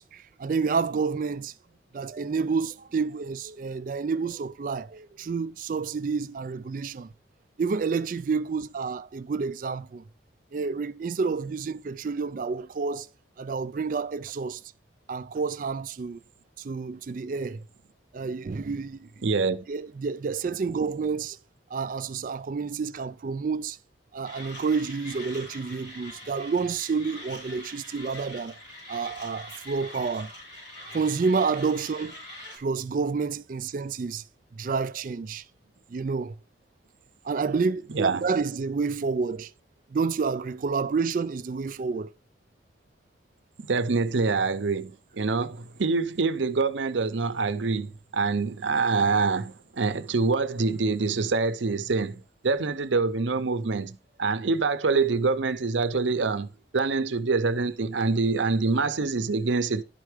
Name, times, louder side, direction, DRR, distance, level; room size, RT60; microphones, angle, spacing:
voice 1, 0.0-1.5 1.9-7.1 7.6-10.0 10.5-13.1 13.4-14.6 15.1-16.2 16.6-17.6 18.1-19.1 19.7-21.4 21.7-23.8 24.1-28.6 28.9-30.3 30.9-32.1 32.6-34.2 34.5-35.4 35.9-36.4 37.2-39.5 39.9-42.1, right 5 dB, 45° right, 0.3 m, -29 dB
voice 2, 19.2-19.6 37.9-38.2 43.6-59.8, right 4 dB, 80° right, 0.7 m, -26 dB
Mechanisms, 24.2-32.6, left 1 dB, 75° left, 4.8 m, -44 dB
11.5 x 4.6 x 4.9 m
head